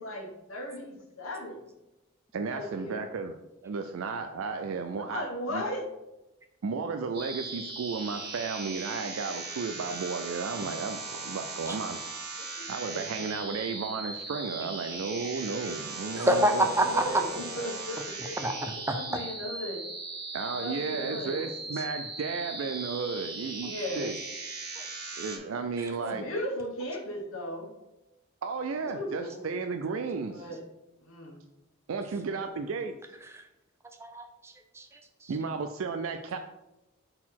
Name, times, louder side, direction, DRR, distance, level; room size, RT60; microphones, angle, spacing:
voice 1, 0.0-1.7 2.5-3.1 5.0-5.8 12.4-13.2 16.8-18.4 18.9-19.8 20.6-21.4 23.6-24.1 25.9-27.7 28.9-29.4 30.2-30.6 31.0-31.4 32.0-32.7, left 1 dB, 80° left, 1 dB, 1.3 m, -37 dB
voice 2, 2.3-3.3 3.6-5.6 6.6-12.0 12.7-16.6 20.3-24.2 25.2-26.2 28.4-30.5 31.9-32.9 35.3-36.4, right 4 dB, 80° right, 7 dB, 0.4 m, -33 dB
sound 1, 7.1-25.4, right 3 dB, 50° right, 1.6 m, -39 dB
voice 3, 16.2-17.4 18.2-19.0 21.7-21.9 24.8-24.9 25.8-25.9 33.2-33.5 34.0-35.4, right 1 dB, 15° right, 6 dB, 0.5 m, -29 dB
4.4 x 4.1 x 5.7 m, 0.94 s
head